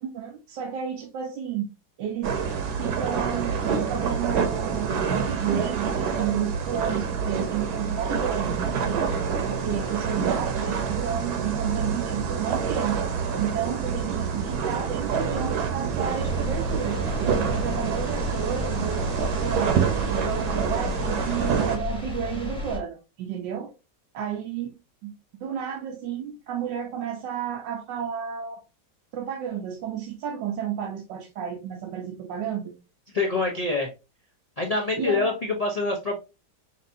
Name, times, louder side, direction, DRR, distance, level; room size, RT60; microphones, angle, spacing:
voice 1, 0.0-1.7 2.0-2.4 2.8-9.1 9.4-13.0 13.4-19.1 19.3-19.8 20.1-23.7 24.1-24.8 25.0-25.1 25.4-28.6 29.1-32.7 35.0-35.3, right 8 dB, 90° right, 1.4 m, -32 dB
sound 1, 2.2-21.8, right 6 dB, 65° right, 1.3 m, -27 dB
sound 2, 16.0-22.8, left 3 dB, 5° left, 0.9 m, -33 dB
voice 2, 33.1-33.9 34.6-36.2, left 3 dB, 70° left, 0.3 m, -25 dB
5.9 x 2.7 x 2.6 m
omnidirectional pair, 1.9 m